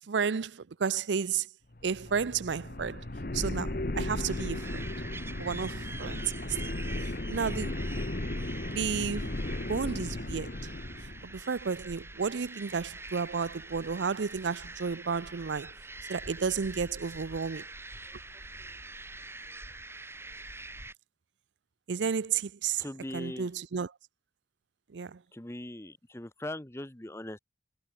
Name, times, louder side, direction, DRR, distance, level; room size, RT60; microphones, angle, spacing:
voice 1, 0.1-1.5 1.8-3.0 3.3-4.9 5.4-6.2 7.3-7.8 8.7-10.6 11.0-15.7 16.1-17.7 21.9-22.8 23.1-23.9 24.9-25.2, right 6 dB, 80° right, 0.5 m, -32 dB
sound 1, 1.7-11.3, left 1 dB, 50° left, 1.3 m, -35 dB
sound 2, 4.0-20.9, right 2 dB, 15° right, 2.7 m, -45 dB
voice 2, 22.8-23.5 25.3-27.4, left 1 dB, 15° left, 0.9 m, -40 dB
head